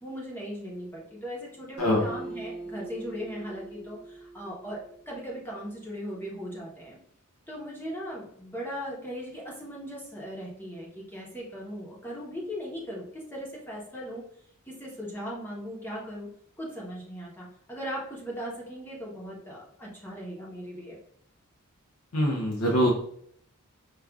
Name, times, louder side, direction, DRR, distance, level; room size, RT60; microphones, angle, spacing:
voice 1, 0.0-4.8 5.1-7.0 7.5-14.2 14.7-16.3 16.6-21.0, equal, 10° left, -4 dB, 0.7 m, -38 dB
Acoustic guitar, 1.8-5.3, right 3 dB, 50° right, 0.8 m, -41 dB
voice 2, 22.1-22.9, equal, 85° left, -2 dB, 0.6 m, -23 dB
4.9 x 2.3 x 2.3 m, 0.66 s
head